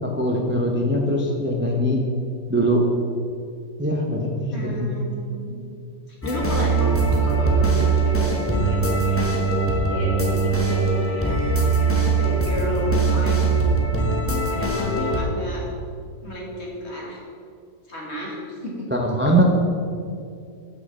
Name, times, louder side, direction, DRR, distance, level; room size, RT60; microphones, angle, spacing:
voice 1, 0.0-2.0 2.5-2.8 3.8-4.9 18.9-19.4, equal, 15° right, 0 dB, 0.4 m, -22 dB
voice 2, 4.5-5.5 6.2-9.3 9.9-11.4 12.2-13.4 14.5-15.6 16.2-17.2 17.9-18.9, equal, 50° left, -2 dB, 1.9 m, -31 dB
sound 1, 6.2-15.2, right 3 dB, 10° left, 0.8 m, -21 dB
6.2 x 5.8 x 7.2 m, 2.4 s
omnidirectional pair, 1.5 m